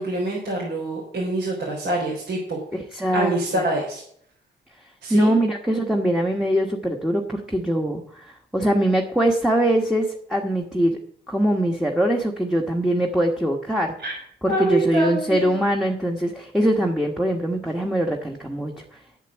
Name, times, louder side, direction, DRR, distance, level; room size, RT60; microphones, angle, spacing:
voice 1, 0.0-2.6 3.1-4.0 5.0-5.3 14.0-14.1 14.5-15.6, right 2 dB, 70° right, -4 dB, 3.7 m, -25 dB
voice 2, 2.9-3.6 5.1-11.0 11.3-13.9 14.4-18.7, right 1 dB, ahead, 1 dB, 1.3 m, -22 dB
8.3 x 7.6 x 7.2 m, 0.64 s
cardioid pair, 85°, 20 cm